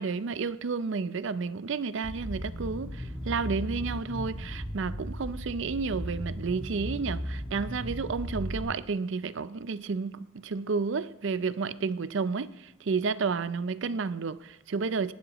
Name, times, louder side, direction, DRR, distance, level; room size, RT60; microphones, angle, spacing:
voice 1, 0.0-15.1, right 4 dB, 60° right, 0.5 m, -31 dB
sound 1, 2.0-8.6, equal, 10° right, 1.9 m, -36 dB
18.5 x 12.5 x 3.0 m
head